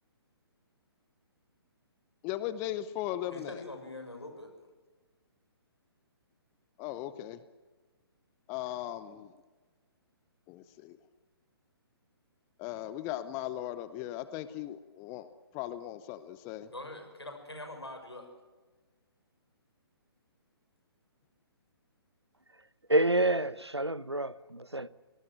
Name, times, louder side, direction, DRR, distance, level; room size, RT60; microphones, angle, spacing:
voice 1, 2.2-3.6 6.8-7.4 8.5-9.3 10.5-11.0 12.6-15.3 15.5-16.7, left 13 dB, 20° left, 0.8 m, -38 dB
voice 2, 3.3-4.5 16.7-18.3, left 1 dB, 80° left, 6.6 m, -43 dB
voice 3, 22.9-24.9, right 1 dB, 90° right, 0.9 m, -28 dB
27.0 x 18.5 x 7.9 m
figure-of-eight pair, 130°, 13 cm